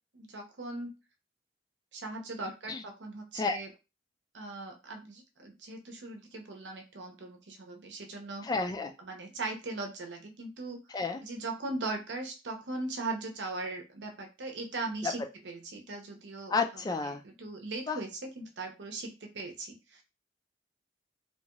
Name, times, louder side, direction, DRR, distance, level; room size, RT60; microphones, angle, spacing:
voice 1, 0.1-0.9 1.9-3.7 4.3-8.5 9.0-10.8 11.2-16.5 17.0-20.0, right 2 dB, 75° right, 4 dB, 0.7 m, -39 dB
voice 2, 8.4-8.9 10.9-11.2 15.0-15.1 16.5-17.2 17.9-18.0, left 4 dB, 20° left, 5 dB, 0.3 m, -31 dB
2.8 x 2.3 x 2.9 m, 0.28 s
head